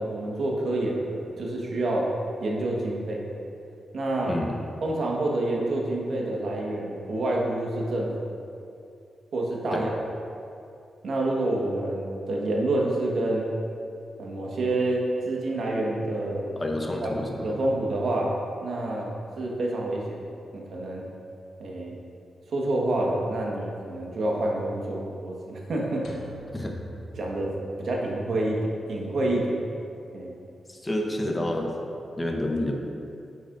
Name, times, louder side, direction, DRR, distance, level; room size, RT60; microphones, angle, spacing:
voice 1, 0.0-2.1 2.4-3.2 3.9-4.4 4.8-8.1 9.3-9.9 11.0-13.5 14.2-16.5 17.0-17.1 17.4-18.3 18.6-20.3 20.5-21.0 21.6-22.0 22.5-26.2 27.2-27.5 27.8-28.6 28.9-29.6 30.1-30.4, right 1 dB, 70° right, -2 dB, 1.4 m, -28 dB
voice 2, 4.2-4.6 9.7-9.9 16.6-17.6 26.5-26.7 30.7-31.7 32.2-32.7, left 1 dB, 20° left, 1 dB, 1.0 m, -29 dB
sound 1, 26.0-28.3, equal, 90° left, 1.0 m, -45 dB
9.7 x 7.7 x 2.6 m, 2.5 s
cardioid pair, 85°, 0 cm